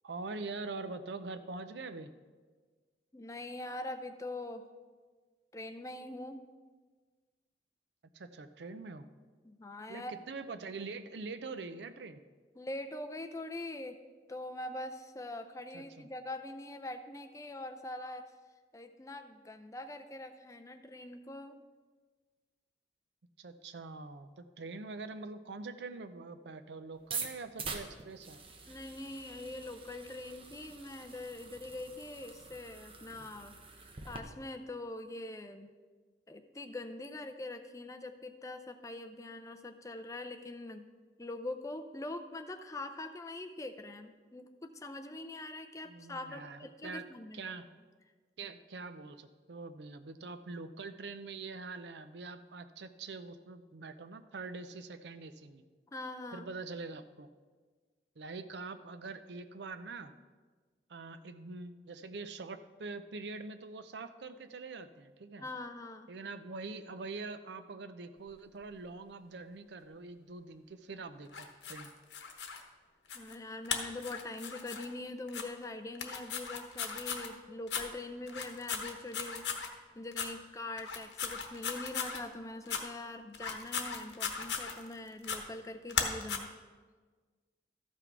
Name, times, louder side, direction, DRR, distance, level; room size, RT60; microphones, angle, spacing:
voice 1, 0.0-2.1 8.1-9.1 9.9-12.2 15.7-16.1 23.4-28.4 45.8-47.0 47.3-47.7 48.4-55.6 56.3-57.3 58.2-60.1 60.9-65.5 66.1-71.9, right 3 dB, 70° right, 10 dB, 0.5 m, -44 dB
voice 2, 3.1-4.6 5.5-6.4 9.4-10.1 12.6-14.0 14.3-18.3 18.7-21.6 28.7-33.6 33.8-35.7 36.3-40.8 41.2-47.6 55.9-56.5 65.4-66.1 73.1-86.5, left 2 dB, 20° left, 7 dB, 0.4 m, -43 dB
sound 1, 27.0-34.2, right 4 dB, 30° right, 0.7 m, -45 dB
sound 2, 71.3-72.6 73.1-73.3 73.6-74.9 75.3-75.4 75.9-77.3 77.7-77.8 78.3-79.7 80.1-80.3 80.8-82.2 82.7-82.8 83.3-84.9 85.2-85.4 85.9-86.4, left 6 dB, 75° left, 1.1 m, -37 dB
13.5 x 5.9 x 4.6 m, 1.4 s
head